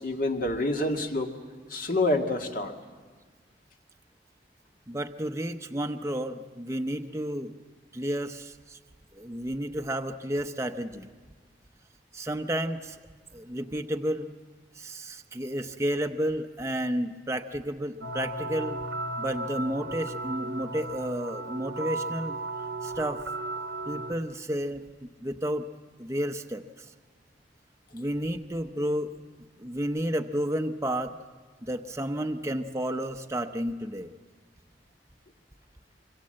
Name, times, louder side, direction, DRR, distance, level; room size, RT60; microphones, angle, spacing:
voice 1, 0.0-1.3 1.7-2.7, left 1 dB, 50° left, 4 dB, 1.8 m, -27 dB
voice 2, 4.9-7.5 7.9-8.8 9.2-11.1 12.1-13.0 13.3-14.3 14.8-18.8 19.2-22.4 22.8-23.2 23.9-25.6 26.0-26.6 27.9-29.1 29.6-31.1 31.6-34.1, equal, 15° right, 6 dB, 0.8 m, -31 dB
sound 1, 18.0-24.1, right 2 dB, 90° right, 1.4 m, -35 dB
25.0 x 24.0 x 7.7 m, 1.5 s
head